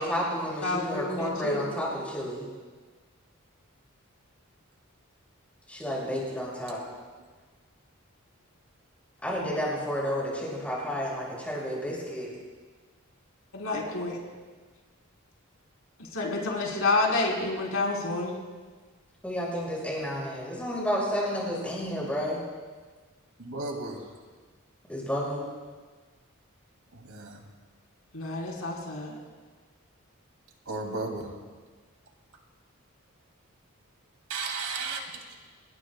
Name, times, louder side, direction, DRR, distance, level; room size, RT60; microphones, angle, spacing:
voice 1, 0.0-2.5 5.7-6.8 9.2-12.3 19.2-22.4 24.9-25.4, equal, 5° left, -5 dB, 6.4 m, -31 dB
voice 2, 0.6-1.7 13.5-14.2 16.0-18.3 28.1-29.2, left 2 dB, 75° left, -1 dB, 3.7 m, -29 dB
voice 3, 23.4-24.1 26.9-27.4 30.7-31.3 34.3-35.0, right 3 dB, 90° right, 2 dB, 2.6 m, -34 dB
27.5 x 20.0 x 2.3 m, 1.4 s
head